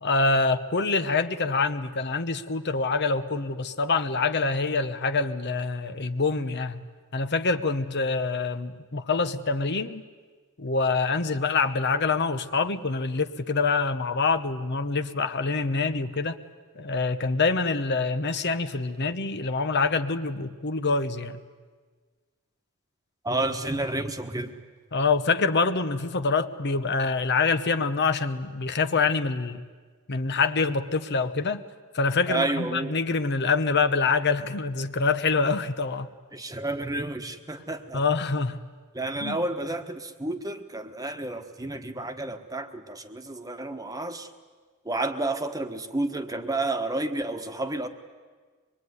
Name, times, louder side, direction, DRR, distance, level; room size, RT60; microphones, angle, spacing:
voice 1, 0.0-6.8 7.1-10.0 10.6-16.4 16.8-21.4 24.9-29.6 30.1-31.6 31.9-36.1 37.9-38.6 39.2-39.4, left 4 dB, 50° left, 10 dB, 1.0 m, -25 dB
voice 2, 23.2-24.5 32.3-32.9 36.3-38.0 38.9-44.3 44.8-47.9, right 2 dB, 15° right, 7 dB, 1.3 m, -30 dB
24.0 x 22.0 x 9.7 m, 1.5 s
head